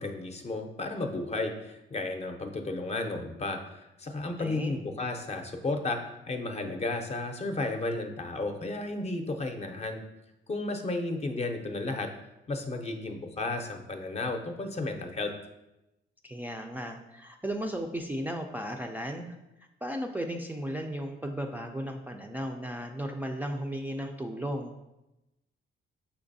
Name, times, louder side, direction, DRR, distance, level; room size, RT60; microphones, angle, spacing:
voice 1, 0.0-10.0 10.5-12.1 12.5-15.3, left 2 dB, 35° left, 5 dB, 0.6 m, -33 dB
voice 2, 4.4-4.7 16.2-19.3 19.8-24.7, equal, 10° right, 2 dB, 0.3 m, -35 dB
5.8 x 3.2 x 2.6 m, 0.93 s
cardioid pair, 90°, 20 cm